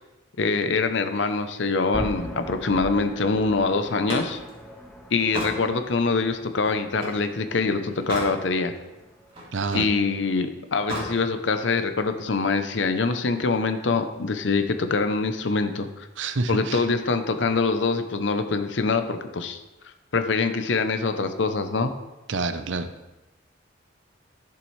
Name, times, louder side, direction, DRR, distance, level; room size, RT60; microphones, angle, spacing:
voice 1, 0.4-4.4 5.1-8.8 9.7-16.1 16.5-19.6 20.1-21.9, left 4 dB, 65° left, 8 dB, 0.7 m, -24 dB
sound 1, 1.9-9.9, equal, 5° left, 0.8 m, -40 dB
Slam, 3.8-7.3 7.7-8.4 8.8-9.9 10.7-11.2, equal, 30° right, 2.6 m, -34 dB
voice 2, 9.5-9.9 16.2-16.8 22.3-22.9, right 3 dB, 70° right, 10 dB, 0.6 m, -28 dB
11.0 x 7.0 x 3.2 m, 1.0 s
head